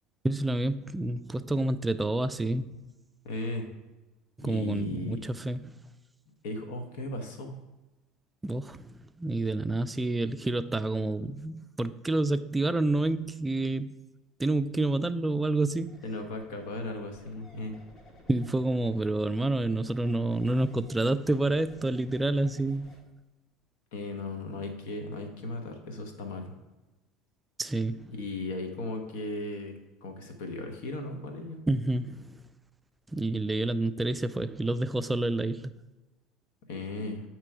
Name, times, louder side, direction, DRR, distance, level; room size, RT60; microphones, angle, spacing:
voice 1, 0.2-2.7 4.4-5.7 8.4-13.9 14.4-16.0 18.3-22.9 27.6-28.1 31.7-32.4 33.1-35.7, right 2 dB, 15° right, 12 dB, 0.3 m, -28 dB
voice 2, 3.2-3.7 4.4-5.2 6.4-7.5 16.0-17.7 23.9-26.5 28.1-29.7 30.0-31.6 36.7-37.2, left 2 dB, 80° left, 5 dB, 1.0 m, -36 dB
sound 1, 15.7-23.0, left 1 dB, 40° left, 1.8 m, -56 dB
8.6 x 3.0 x 4.7 m, 1.1 s
supercardioid pair, 100°, 0 cm